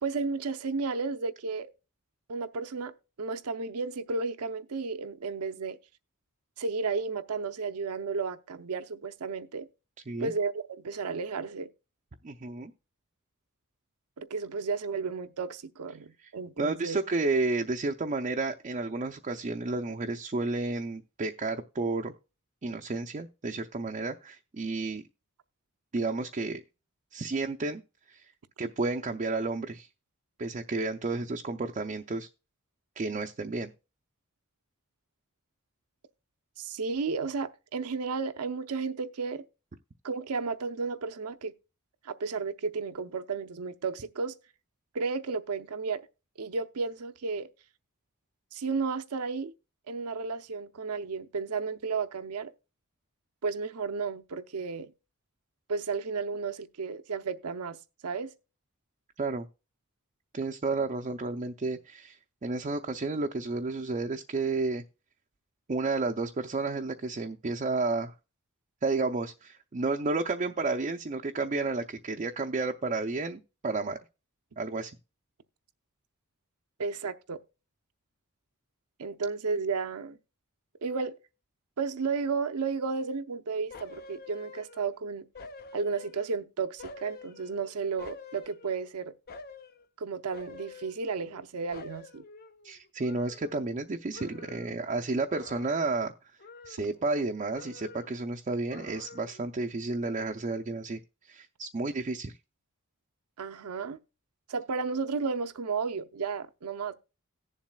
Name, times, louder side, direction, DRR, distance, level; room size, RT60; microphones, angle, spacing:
voice 1, 0.0-1.7 2.3-5.8 6.6-9.7 10.2-11.7 14.2-17.0 36.6-39.4 40.0-41.5 42.0-44.3 44.9-46.1 46.4-47.5 48.5-49.5 49.9-52.5 53.4-54.9 55.7-57.8 58.0-58.3 76.8-77.4 79.0-80.2 80.8-81.2 81.8-85.2 85.7-89.1 90.0-92.2 103.4-104.0 104.5-106.9, right 4 dB, 80° right, 0.6 m, -33 dB
voice 2, 12.2-12.7 16.6-22.1 22.6-25.0 25.9-26.6 27.1-27.8 28.1-28.3 28.6-29.9 30.4-32.3 33.0-33.7 59.2-59.5 60.3-64.8 65.7-68.1 68.8-74.0 74.6-74.9 92.6-96.1 96.7-101.0 101.3-102.3, right 3 dB, 35° right, 0.5 m, -31 dB
sound 1, 83.7-85.0 85.3-86.4 86.8-88.9 89.3-89.8 90.3-91.4 91.7-93.9 94.1-94.8 95.3-96.1 96.4-97.3 97.5-98.2 98.7-99.5 99.9-100.0, left 3 dB, 45° left, 0.7 m, -48 dB
18.0 x 7.3 x 2.3 m
head